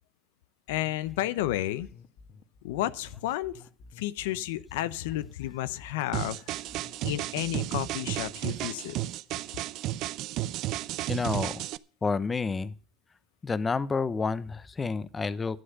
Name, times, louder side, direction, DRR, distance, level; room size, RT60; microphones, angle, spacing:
voice 1, 0.7-1.9 2.6-3.5 4.0-6.4 7.0-9.0, left 14 dB, 85° left, 16 dB, 0.6 m, -31 dB
sound 1, 1.0-8.7, left 4 dB, 55° left, 1.9 m, -52 dB
sound 2, 6.1-11.8, right 15 dB, 60° right, 0.5 m, -33 dB
voice 2, 11.1-11.6 12.0-12.7 13.4-15.6, left 4 dB, 25° left, 17 dB, 0.8 m, -29 dB
11.5 x 7.8 x 6.5 m, 0.39 s
supercardioid pair, 100°, 0 cm